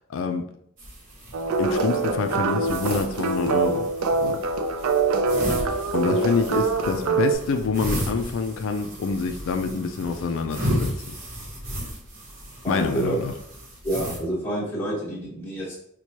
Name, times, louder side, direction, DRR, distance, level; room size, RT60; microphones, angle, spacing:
voice 1, 0.1-0.4 1.6-3.9 4.2-4.4 5.9-10.9 12.7-13.3, left 5 dB, 65° left, 6 dB, 0.3 m, -26 dB
sound 1, 0.8-14.2, equal, 40° right, 1.0 m, -34 dB
sound 2, 1.3-7.3, right 4 dB, 80° right, 0.4 m, -24 dB
voice 2, 12.6-13.2 13.8-15.7, right 1 dB, 10° left, -10 dB, 1.2 m, -28 dB
4.4 x 2.2 x 2.8 m, 0.71 s
head